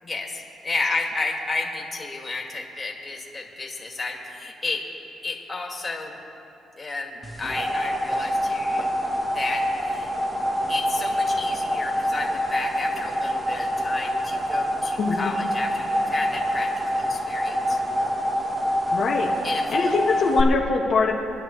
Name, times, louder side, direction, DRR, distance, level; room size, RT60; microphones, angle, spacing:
voice 1, 0.0-4.9 5.2-6.2 6.8-8.9 9.3-10.1 10.7-17.8 19.4-20.0, left 3 dB, 25° left, -1 dB, 2.2 m, -32 dB
sound 1, 7.2-20.4, equal, 20° right, 1.4 m, -26 dB
voice 2, 15.0-15.3 18.9-19.3 19.7-21.1, left 4 dB, 60° left, -2 dB, 1.4 m, -22 dB
26.5 x 10.5 x 3.2 m, 2.9 s
cardioid pair, 90°, 0 cm